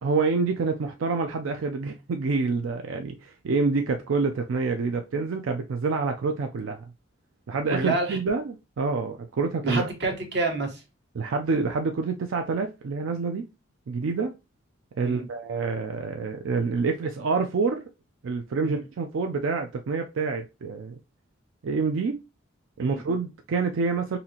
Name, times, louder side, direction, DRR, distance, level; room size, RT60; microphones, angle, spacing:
voice 1, 0.0-6.8 7.5-9.8 11.2-13.5 13.9-14.3 15.0-17.8 18.2-21.0 21.6-22.2 22.8-24.2, right 4 dB, 80° right, 0.4 m, -27 dB
voice 2, 7.7-8.2 9.6-10.8 15.0-15.3 18.6-18.8 22.8-23.0, right 3 dB, 55° right, 1.1 m, -28 dB
4.1 x 2.7 x 2.8 m
head